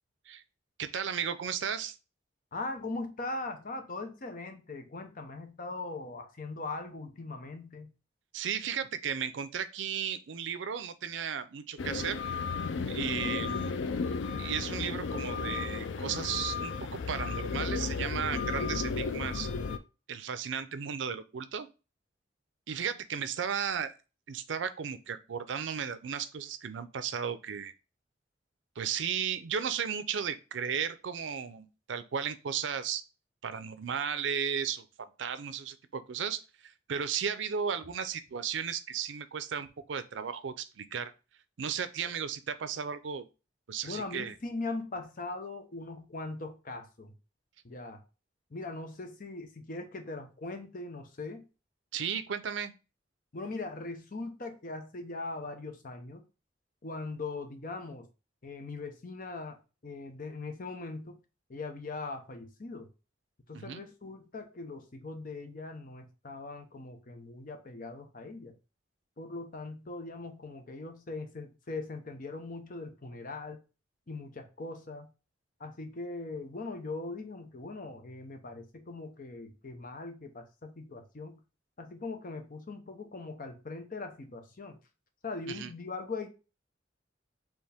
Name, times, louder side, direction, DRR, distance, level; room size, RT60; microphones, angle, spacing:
voice 1, 0.8-2.0 8.3-12.2 12.8-13.8 14.4-19.5 20.1-21.7 22.7-23.9 24.3-27.7 28.8-33.0 33.4-41.1 41.6-43.2 43.7-44.3 51.9-52.7 63.5-63.8 85.5-85.7, right 7 dB, 80° right, 0.5 m, -35 dB
voice 2, 2.5-7.9 42.0-42.1 43.8-47.1 47.6-48.0 48.5-51.5 53.3-56.3 56.8-58.1 58.4-61.2 61.5-62.9 63.5-68.5 69.2-73.6 74.1-75.1 75.6-81.4 81.8-84.8 85.2-86.3, left 3 dB, 45° left, 0.8 m, -40 dB
sound 1, 11.8-19.8, left 4 dB, 80° left, 0.4 m, -34 dB
4.6 x 3.0 x 3.4 m
head